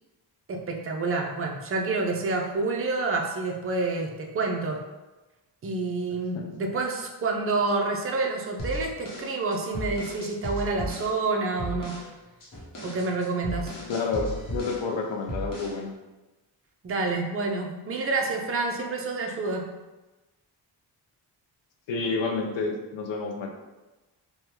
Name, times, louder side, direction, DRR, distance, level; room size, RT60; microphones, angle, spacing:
voice 1, 0.5-4.8 5.6-12.0 12.8-13.7 16.8-19.7, right 3 dB, 30° right, 1 dB, 0.5 m, -28 dB
sound 1, 8.6-11.2 11.6-12.1 12.4-14.9 15.3-15.8, equal, 45° left, 0.9 m, -35 dB
voice 2, 13.8-15.9 21.9-23.5, left 4 dB, 75° left, 2 dB, 0.6 m, -29 dB
3.3 x 2.2 x 2.9 m, 1.1 s
cardioid pair, 70°, 46 cm